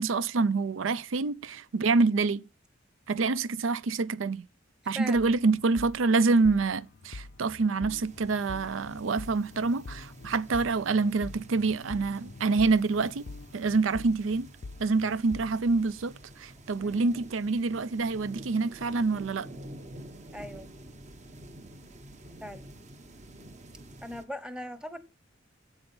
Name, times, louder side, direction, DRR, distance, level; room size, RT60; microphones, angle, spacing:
voice 1, 0.0-2.4 3.1-4.4 4.9-13.3 13.5-14.5 14.8-19.5, right 3 dB, 85° right, 0.5 m, -26 dB
voice 2, 4.9-5.3 15.0-15.2 16.8-17.0 20.3-20.7 22.4-22.7 24.0-25.0, equal, 5° right, 0.9 m, -40 dB
sound 1, 5.1-15.8, left 3 dB, 60° left, 0.5 m, -45 dB
sound 2, 8.0-24.3, right 1 dB, 40° right, 0.9 m, -49 dB
8.1 x 7.9 x 5.4 m
head